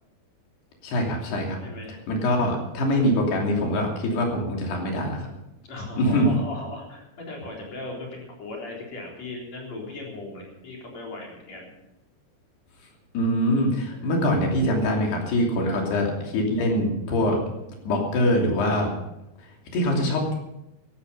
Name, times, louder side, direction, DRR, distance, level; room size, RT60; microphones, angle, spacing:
voice 1, 0.8-1.6 2.1-5.3 6.0-6.3 13.1-17.4 17.8-18.9 19.4-20.3, equal, 80° left, 0 dB, 5.1 m, -23 dB
voice 2, 1.6-2.0 5.7-11.7 13.9-14.1 15.6-15.8, left 2 dB, 45° left, -2 dB, 4.8 m, -38 dB
15.5 x 12.5 x 5.5 m, 0.88 s
omnidirectional pair, 4.6 m